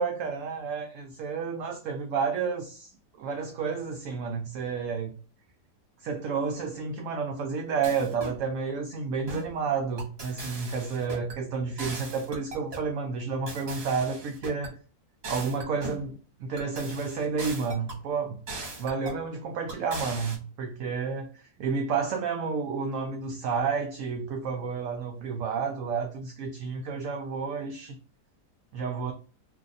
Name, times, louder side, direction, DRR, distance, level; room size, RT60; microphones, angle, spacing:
voice 1, 0.0-2.9 3.2-5.1 6.0-14.7 15.3-16.1 16.4-18.4 18.8-21.3 21.6-27.9 28.7-29.1, right 5 dB, 70° right, 0.7 m, -30 dB
sound 1, 7.8-8.4 9.3-9.6 10.0-11.4 11.8-12.9 13.5-14.7 15.2-16.1 16.6-18.0 18.5-19.2 19.7-20.4, right 2 dB, 45° right, 1.1 m, -39 dB
2.7 x 2.5 x 3.9 m
omnidirectional pair, 1.8 m